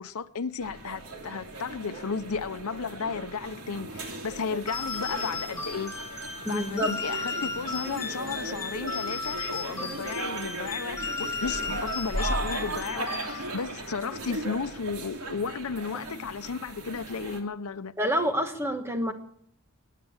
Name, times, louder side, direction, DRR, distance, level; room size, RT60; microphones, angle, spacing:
voice 1, 0.0-5.9 6.5-17.9, left 5 dB, 90° left, 0.7 m, -34 dB
sound 1, 0.6-17.4, right 2 dB, 90° right, 3.1 m, -37 dB
sound 2, 4.7-13.7, left 4 dB, 15° left, 4.3 m, -35 dB
voice 2, 6.4-6.9 18.0-19.1, equal, 10° right, 1.4 m, -27 dB
21.0 x 9.3 x 7.2 m
head